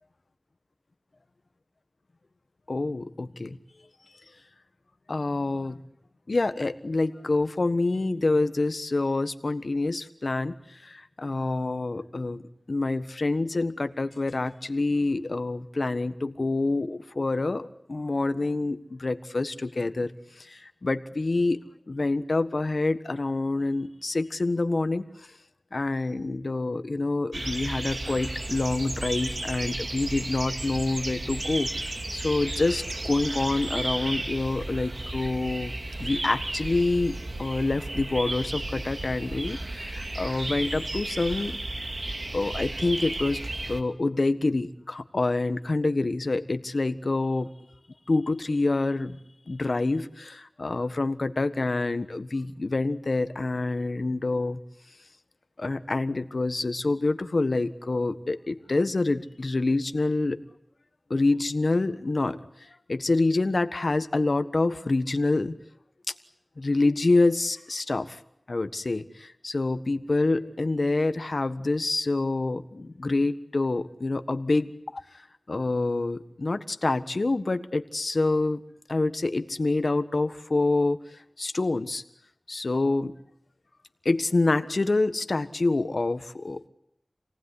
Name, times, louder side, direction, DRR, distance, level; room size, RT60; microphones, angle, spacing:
voice 1, 2.7-3.6 5.1-5.8 6.3-21.6 21.9-25.0 25.7-35.7 36.0-41.6 42.3-43.4 43.7-47.5 48.1-49.2 49.5-54.6 55.6-60.4 61.1-65.6 66.1-66.2 66.6-68.2 68.5-75.2 75.5-78.6 78.9-81.0 81.4-82.0 82.5-83.1 84.0-86.7, left 2 dB, 75° left, 10 dB, 1.4 m, -27 dB
sound 1, 27.3-43.8, right 2 dB, 70° right, 2.5 m, -33 dB
28.0 x 18.5 x 9.9 m, 0.76 s
wide cardioid pair, 55°, 0 cm